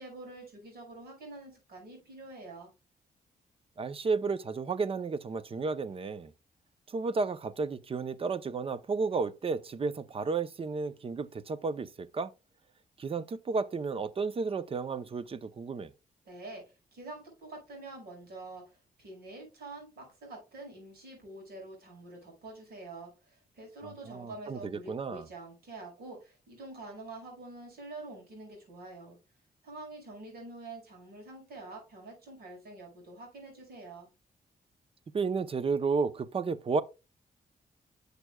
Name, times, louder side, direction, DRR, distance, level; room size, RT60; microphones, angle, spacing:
voice 1, 0.0-2.7 16.3-29.2 29.6-34.1, right 2 dB, 85° right, 5.2 m, -46 dB
voice 2, 3.8-6.3 6.9-12.3 13.0-15.9 23.8-25.3 35.1-36.8, right 4 dB, 35° right, 0.6 m, -32 dB
11.0 x 6.7 x 2.2 m
cardioid pair, 115°, 16 cm